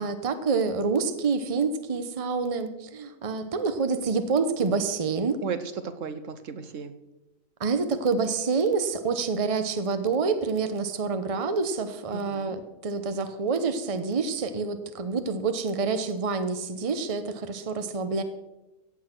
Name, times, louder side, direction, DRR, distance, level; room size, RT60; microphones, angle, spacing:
voice 1, 0.0-5.4 7.6-18.2, right 4 dB, 30° right, 9 dB, 0.9 m, -27 dB
voice 2, 5.4-6.9 12.1-12.5, right 6 dB, 65° right, 11 dB, 1.2 m, -35 dB
15.5 x 8.6 x 6.0 m, 1.0 s
omnidirectional pair, 1.4 m